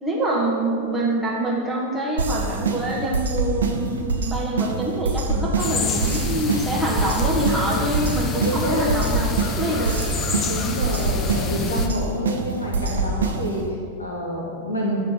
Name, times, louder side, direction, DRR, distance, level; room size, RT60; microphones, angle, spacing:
voice 1, 0.0-9.9, right 1 dB, 10° right, -4 dB, 1.4 m, -25 dB
sound 1, 2.2-13.7, right 3 dB, 65° right, 0.6 m, -25 dB
sound 2, 5.6-11.9, left 4 dB, 25° left, 0.5 m, -28 dB
voice 2, 8.4-9.0 10.4-15.0, equal, 75° left, -3 dB, 1.4 m, -28 dB
7.8 x 3.3 x 4.8 m, 2.3 s
figure-of-eight pair, 90°, 0 cm